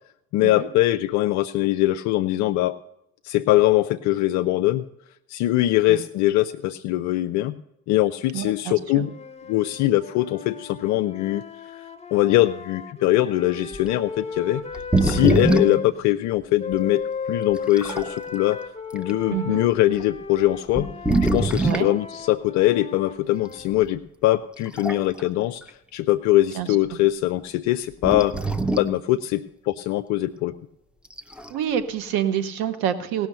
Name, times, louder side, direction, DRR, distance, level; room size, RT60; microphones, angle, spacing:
voice 1, 0.3-2.8 3.2-4.8 5.3-7.6 7.9-9.1 9.5-11.4 12.1-14.6 15.0-17.0 17.3-18.6 18.9-20.9 21.2-28.3 28.8-30.5, left 15 dB, 40° left, 10 dB, 0.5 m, -22 dB
voice 2, 8.3-9.0 19.3-19.6 21.6-21.9 26.6-26.7 31.5-33.3, right 9 dB, 50° right, 12 dB, 1.2 m, -27 dB
sound 1, 8.9-15.9 16.6-23.8, left 5 dB, 15° left, 1.2 m, -36 dB
sound 2, 13.7-13.9 14.7-15.9 16.7-16.8 17.5-18.1 18.9-19.1 20.0-20.1 20.7-21.9 23.6-23.7 24.6-25.3 25.6-25.7 28.0-29.0 31.0-31.6, right 2 dB, ahead, 0.7 m, -23 dB
17.0 x 6.3 x 6.7 m, 0.81 s
figure-of-eight pair, 60°, 44 cm